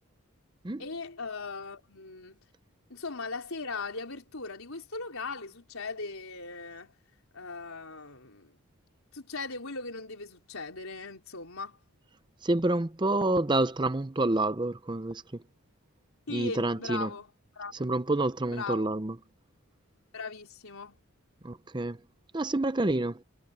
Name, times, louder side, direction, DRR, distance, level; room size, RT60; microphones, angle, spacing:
voice 1, 0.8-2.4 2.9-6.9 7.3-8.5 9.1-11.8 16.3-17.3 17.6-17.7 18.5-19.0 20.1-21.0, left 3 dB, 70° left, 4.2 m, -39 dB
voice 2, 12.4-15.2 16.3-17.1 17.7-19.2 21.4-22.0 22.3-23.2, right 2 dB, 20° right, 0.6 m, -28 dB
head